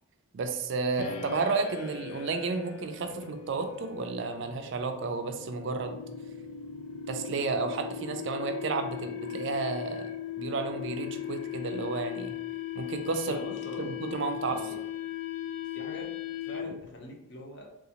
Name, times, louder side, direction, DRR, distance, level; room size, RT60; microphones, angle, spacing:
voice 1, 0.3-6.0 7.1-10.1 10.4-12.4 12.8-13.4 13.8-14.7, right 4 dB, 55° right, 6 dB, 0.3 m, -32 dB
sound 1, 1.0-16.9, left 10 dB, 90° left, 0.3 m, -38 dB
voice 2, 13.3-13.9 14.4-14.8 15.7-16.1 16.5-17.7, left 1 dB, 50° left, 0 dB, 0.7 m, -43 dB
3.7 x 2.4 x 2.8 m, 0.89 s
head